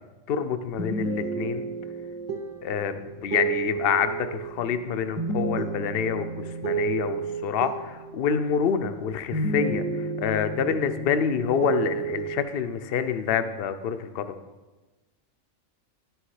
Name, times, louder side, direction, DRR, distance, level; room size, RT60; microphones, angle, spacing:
voice 1, 0.3-1.7 2.6-6.3 6.6-14.3, left 7 dB, 55° left, 10 dB, 0.7 m, -27 dB
sound 1, 0.8-9.1 9.3-12.4, right 4 dB, 25° right, 1.0 m, -31 dB
10.5 x 6.4 x 4.8 m, 1.2 s
omnidirectional pair, 1.4 m